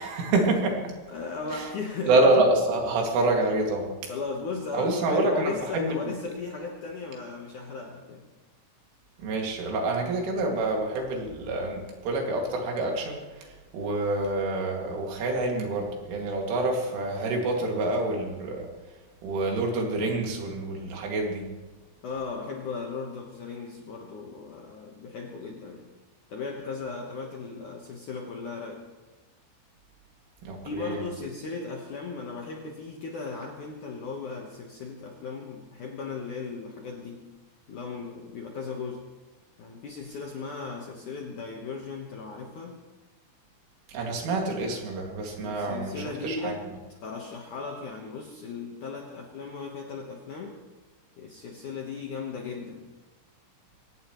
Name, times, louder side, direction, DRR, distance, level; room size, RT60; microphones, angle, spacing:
voice 1, 0.0-0.9 1.5-1.7 2.1-4.1 4.7-5.9 9.2-18.7 19.2-21.5 30.4-31.0 43.9-46.6, right 2 dB, 85° right, 1 dB, 5.0 m, -27 dB
voice 2, 1.1-2.1 4.1-8.3 22.0-25.9 26.3-28.9 30.6-37.3 37.7-39.1 39.6-42.8 45.4-46.7 47.0-50.6 51.2-52.9, left 4 dB, 65° left, 0 dB, 1.9 m, -37 dB
23.5 x 17.0 x 3.2 m, 1.2 s
omnidirectional pair, 5.5 m